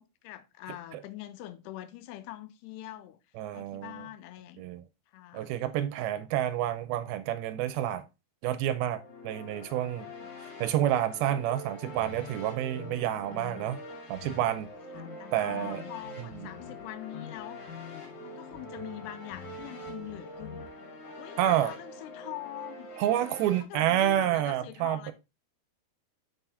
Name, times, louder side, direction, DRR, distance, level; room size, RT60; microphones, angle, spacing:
voice 1, 0.0-3.2 3.5-4.6 5.1-5.5 14.9-17.8 18.2-20.7 21.2-22.9 23.7-25.1, left 14 dB, 85° left, 2.7 m, -43 dB
voice 2, 0.7-1.0 3.4-4.1 4.6-4.9 5.3-8.1 8.4-10.1 10.4-13.8 14.1-14.7 15.3-15.8 16.2-16.5 21.4-21.7 23.0-25.1, right 12 dB, 80° right, 2.3 m, -29 dB
sound 1, 8.8-23.6, equal, 45° left, 2.5 m, -45 dB
sound 2, 12.0-13.8 14.1-14.7 15.0-16.8 17.1-17.4 17.7-20.7, left 8 dB, 70° left, 2.1 m, -48 dB
7.4 x 5.6 x 3.3 m
omnidirectional pair, 4.6 m